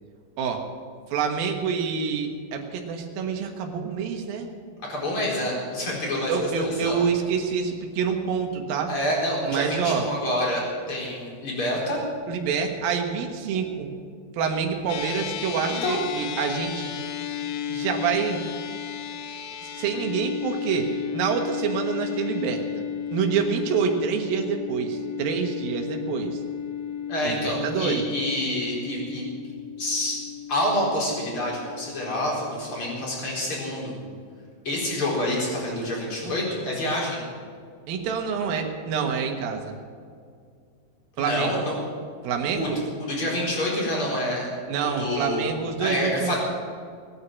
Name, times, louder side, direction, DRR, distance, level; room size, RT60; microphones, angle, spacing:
voice 1, 1.1-4.5 6.3-8.9 9.4-10.0 12.3-13.9 14.3-16.9 17.7-18.4 19.6-22.6 23.1-26.4 27.2-28.0 37.9-39.7 41.2-41.6 42.2-42.8 44.7-46.3, right 6 dB, 80° right, 3 dB, 3.2 m, -27 dB
voice 2, 4.9-7.0 8.9-10.6 10.9-12.0 15.6-16.0 19.3-19.5 27.1-29.2 29.8-30.2 30.5-33.9 34.6-37.2 41.2-41.7 42.5-42.7 43.0-44.5 44.8-45.5 45.8-46.4, left 1 dB, 35° left, -3 dB, 5.0 m, -27 dB
sound 1, 14.9-33.4, left 9 dB, 70° left, 2.1 m, -34 dB
19.5 x 9.9 x 7.5 m, 2.2 s
omnidirectional pair, 4.2 m